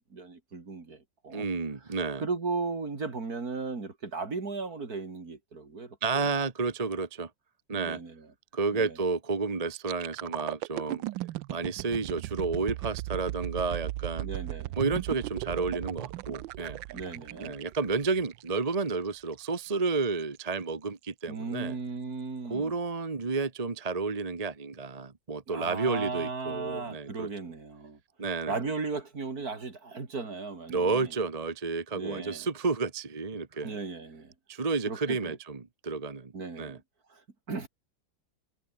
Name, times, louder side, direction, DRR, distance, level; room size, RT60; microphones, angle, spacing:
voice 1, 0.0-1.5 2.2-6.3 7.8-8.3 8.7-9.0 14.2-14.8 16.9-17.6 21.3-22.7 25.5-28.0 28.5-31.1 31.9-32.5 33.6-34.3 34.9-35.4 36.3-36.8 37.1-37.2 37.5-37.7, right 4 dB, 50° right, 3.5 m, -36 dB
voice 2, 1.3-2.2 6.0-7.3 7.7-8.0 8.5-11.0 11.5-14.3 14.7-16.8 17.4-21.8 22.5-27.3 28.2-28.6 30.7-33.8 34.5-36.8, right 4 dB, 25° right, 1.1 m, -31 dB
sound 1, 9.7-19.6 20.0-20.2, right 17 dB, 80° right, 1.3 m, -37 dB
omnidirectional pair, 2.0 m